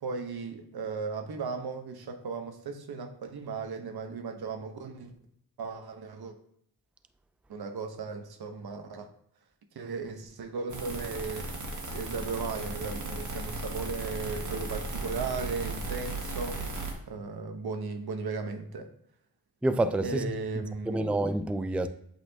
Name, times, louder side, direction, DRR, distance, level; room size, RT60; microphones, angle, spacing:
voice 1, 0.0-5.1 5.6-6.4 7.5-9.1 9.7-11.5 11.9-16.6 17.1-18.9 20.0-21.1, right 4 dB, 75° right, 1.0 m, -36 dB
sound 1, 10.7-16.9, right 2 dB, 50° right, 1.7 m, -36 dB
voice 2, 19.6-20.3 20.9-21.9, right 2 dB, 5° right, 0.4 m, -27 dB
8.2 x 4.3 x 2.8 m
cardioid pair, 65°, 38 cm